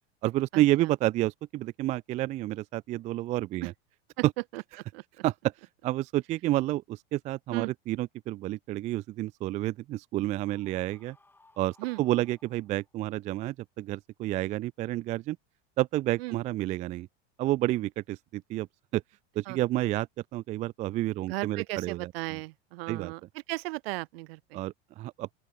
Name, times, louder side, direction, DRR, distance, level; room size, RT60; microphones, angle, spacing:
voice 1, 0.2-3.7 4.2-4.3 5.2-5.5 5.8-11.2 11.6-15.4 15.8-17.1 17.4-18.7 18.9-19.0 19.4-20.1 20.3-22.1 22.9-23.1 24.5-25.4, right 16 dB, 25° right, 0.4 m, -29 dB
Screaming, 10.3-13.0, left 2 dB, 5° left, 6.8 m, -61 dB
voice 2, 21.3-23.2 23.5-24.6, right 22 dB, 65° right, 3.5 m, -35 dB
open air
supercardioid pair, 155°, 31 cm